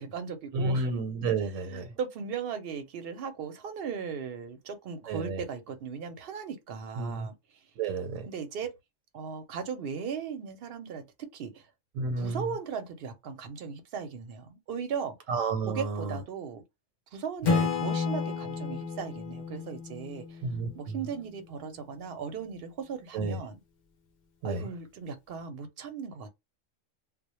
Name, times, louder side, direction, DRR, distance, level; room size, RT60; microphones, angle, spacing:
voice 1, 0.0-0.9 1.7-7.7 8.3-8.7 9.1-11.0 11.3-11.7 12.2-15.1 15.7-16.6 17.1-20.4 20.7-23.6 24.4-26.3, right 6 dB, 60° right, 0.7 m, -37 dB
voice 2, 0.5-1.9 5.1-5.4 7.0-7.3 7.8-8.3 12.0-12.4 15.3-16.2 17.5-17.7 20.4-21.0 23.1-23.4 24.4-24.7, right 3 dB, 90° right, 1.0 m, -31 dB
Acoustic guitar / Strum, 17.4-21.0, left 5 dB, 60° left, 0.5 m, -31 dB
2.1 x 2.0 x 2.9 m
omnidirectional pair, 1.3 m